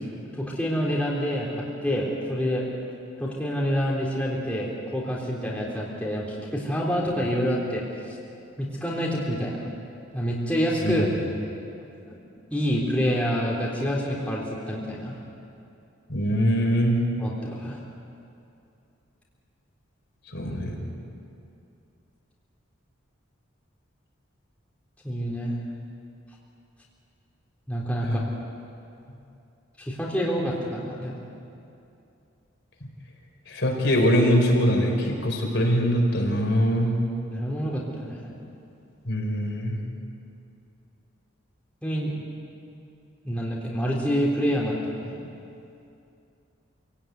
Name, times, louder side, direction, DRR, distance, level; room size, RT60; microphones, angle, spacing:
voice 1, 0.3-2.7 3.2-7.8 8.6-9.7 10.1-11.1 12.5-15.2 17.2-17.8 25.0-25.5 27.7-28.3 29.8-31.2 37.3-38.3 41.8-42.1 43.2-45.2, equal, 5° left, -4 dB, 3.6 m, -27 dB
voice 2, 10.8-11.1 16.1-17.1 20.3-20.8 28.0-28.2 33.5-36.9 39.0-39.8, equal, 60° left, 0 dB, 4.8 m, -23 dB
26.5 x 17.5 x 9.5 m, 2.6 s
head